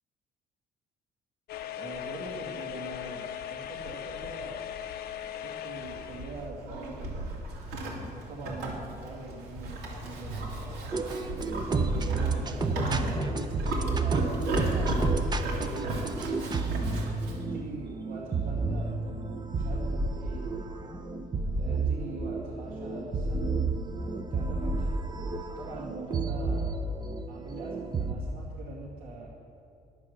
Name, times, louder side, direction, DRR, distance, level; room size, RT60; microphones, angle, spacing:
sound 1, 1.5-6.5, left 10 dB, 70° left, 0.7 m, -39 dB
voice 1, 1.8-3.2 3.5-4.6 5.2-7.3 8.1-10.8 11.7-13.7 14.0-15.8 17.2-20.5 21.6-24.9 25.6-26.8 27.3-29.3, right 2 dB, 65° right, -6 dB, 2.1 m, -43 dB
Livestock farm animals working animals, 5.7-17.4, right 1 dB, 80° right, 2.7 m, -35 dB
sound 2, 10.9-28.2, right 3 dB, 25° right, 0.8 m, -31 dB
10.0 x 8.6 x 6.4 m, 2.4 s
cardioid pair, 110°, 17 cm